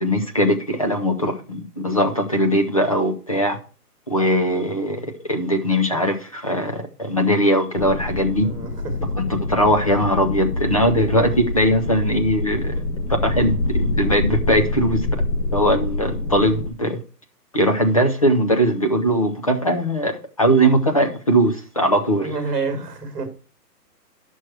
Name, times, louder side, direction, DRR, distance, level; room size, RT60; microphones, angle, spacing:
voice 1, 0.0-3.6 4.1-8.5 9.2-12.8 13.2-15.2 15.5-17.0 17.5-22.3, equal, 20° left, 5 dB, 0.7 m, -20 dB
sound 1, 7.8-16.7, left 2 dB, 90° left, 2.0 m, -25 dB
voice 2, 8.4-9.1 22.2-23.3, right 4 dB, ahead, -10 dB, 1.0 m, -28 dB
11.5 x 6.3 x 4.5 m, 0.39 s
hypercardioid pair, 180°, 48 cm